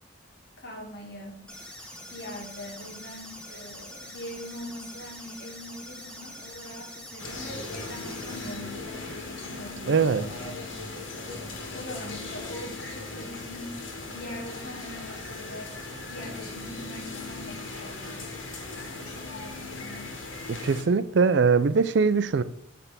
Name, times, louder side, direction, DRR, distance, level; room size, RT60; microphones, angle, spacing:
voice 1, 0.6-1.5 2.1-10.7 11.7-13.8 14.1-15.7 16.1-18.4 19.0-20.1, left 1 dB, 55° left, 2.0 m, -42 dB
sound 1, 1.5-8.5, equal, 5° left, 1.1 m, -44 dB
sound 2, 7.2-20.8, left 3 dB, 80° left, 1.7 m, -38 dB
voice 2, 9.9-10.3 20.5-22.4, right 5 dB, 65° right, 0.4 m, -22 dB
8.8 x 3.5 x 5.8 m
head